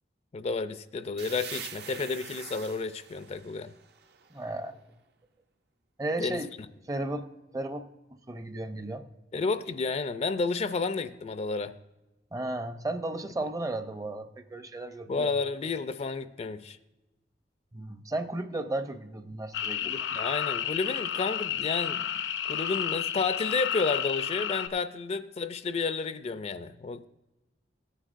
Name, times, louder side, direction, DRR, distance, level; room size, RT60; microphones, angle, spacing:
voice 1, 0.3-3.7 6.2-6.4 9.3-11.8 15.1-16.8 19.8-22.0 22.5-27.1, left 4 dB, 35° left, 11 dB, 0.4 m, -31 dB
sound 1, 1.2-4.8, right 8 dB, 65° right, 0.6 m, -45 dB
voice 2, 4.3-4.8 6.0-6.5 6.9-7.3 7.5-9.1 12.3-15.3 17.7-19.9, right 2 dB, 20° right, 9 dB, 0.5 m, -34 dB
sound 2, 19.5-24.7, left 9 dB, 85° left, 0.6 m, -31 dB
16.0 x 9.9 x 2.5 m, 1.0 s
head